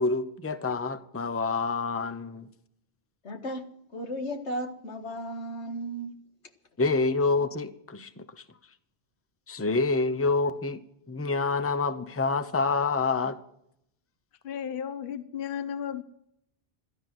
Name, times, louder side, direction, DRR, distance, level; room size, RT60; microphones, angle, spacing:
voice 1, 0.0-2.5 6.8-8.4 9.5-10.8 11.1-13.4, left 3 dB, 15° left, 0.8 m, -27 dB
voice 2, 3.2-6.2 7.4-7.5, equal, 85° left, 2.0 m, -35 dB
voice 3, 14.4-16.0, left 8 dB, 55° left, 1.0 m, -34 dB
16.5 x 13.0 x 6.2 m
omnidirectional pair, 1.1 m